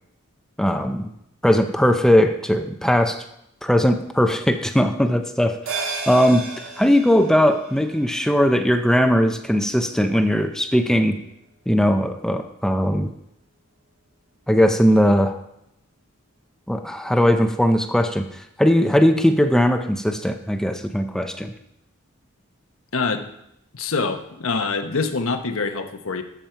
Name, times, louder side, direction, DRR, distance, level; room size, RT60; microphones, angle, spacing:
voice 1, 0.6-1.1 1.4-3.2 3.6-6.4 6.8-11.2 11.7-13.1 14.5-15.4 16.7-18.2 18.6-21.5, equal, 5° left, 6 dB, 0.6 m, -19 dB
sound 1, 5.7-10.4 10.7-10.8, right 4 dB, 75° right, 2.9 m, -35 dB
voice 2, 22.9-23.2 23.7-26.2, left 4 dB, 75° left, 6 dB, 1.0 m, -25 dB
12.5 x 7.3 x 4.5 m, 0.80 s
head